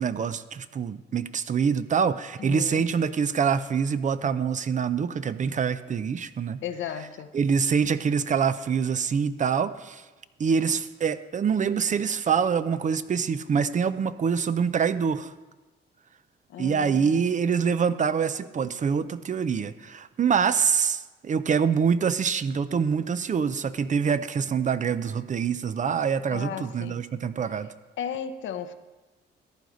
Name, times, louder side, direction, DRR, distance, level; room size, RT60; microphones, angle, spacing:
voice 1, 0.0-6.6 7.3-10.0 10.4-15.3 16.6-27.7, right 6 dB, 40° right, 13 dB, 0.6 m, -25 dB
voice 2, 2.4-2.9 6.6-7.3 16.5-17.3 26.3-27.1 27.5-27.6 28.0-28.7, left 8 dB, 70° left, 10 dB, 0.8 m, -35 dB
14.5 x 10.0 x 3.9 m, 1.2 s
cardioid pair, 90°, 20 cm